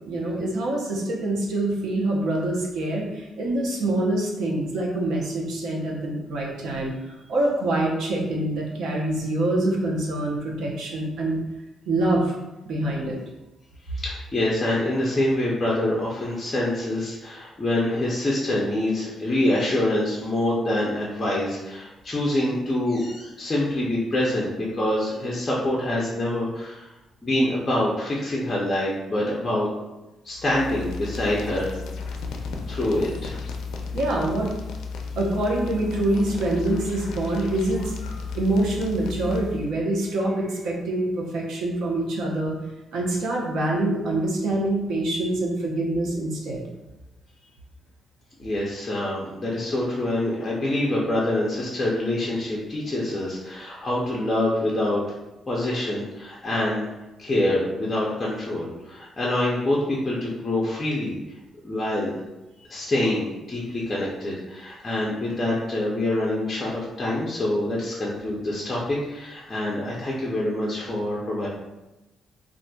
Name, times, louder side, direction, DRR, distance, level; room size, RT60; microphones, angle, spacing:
voice 1, 0.1-11.4 11.9-12.3 12.6-13.2 33.9-34.5 35.2-37.9 38.3-42.6 42.9-46.6, right 1 dB, 75° right, -2 dB, 0.7 m, -25 dB
voice 2, 13.9-26.9 27.2-29.7 30.2-31.8 32.7-33.4 48.4-55.0 55.5-56.9 57.2-61.2 61.6-62.1 62.7-71.5, left 1 dB, 15° left, -5 dB, 0.4 m, -25 dB
sound 1, 30.3-39.7, left 4 dB, 80° left, 0.4 m, -34 dB
3.9 x 2.4 x 2.2 m, 1.0 s
cardioid pair, 175°, 0 cm